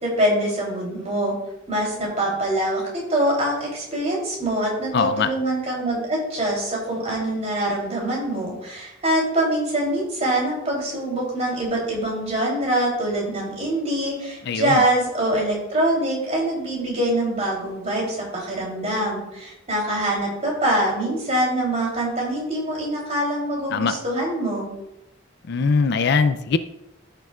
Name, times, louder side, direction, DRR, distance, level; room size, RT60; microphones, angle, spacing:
voice 1, 0.0-1.3 1.7-24.7, right 1 dB, 35° right, -3 dB, 3.3 m, -24 dB
voice 2, 4.9-5.3 14.5-14.8 23.7-23.9 25.5-26.6, left 4 dB, 55° left, 11 dB, 0.4 m, -21 dB
14.5 x 6.8 x 2.4 m, 0.87 s
head